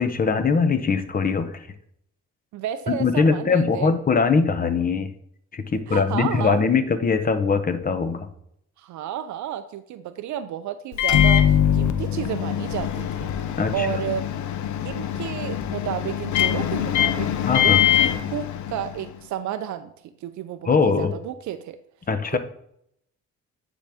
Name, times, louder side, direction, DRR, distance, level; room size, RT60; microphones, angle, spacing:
voice 1, 0.0-1.7 2.9-5.1 5.5-8.3 13.6-13.9 17.5-17.8 20.7-21.1 22.1-22.4, left 5 dB, 30° left, 10 dB, 0.7 m, -21 dB
voice 2, 2.5-3.9 5.9-6.6 8.8-13.3 13.7-14.3 14.8-17.3 17.6-19.9 20.2-21.8 22.3-22.4, right 10 dB, 70° right, 10 dB, 0.5 m, -31 dB
Microwave oven, 10.9-19.1, left 10 dB, 70° left, 0.6 m, -23 dB
9.6 x 3.8 x 3.5 m, 0.71 s
cardioid pair, 90°, 30 cm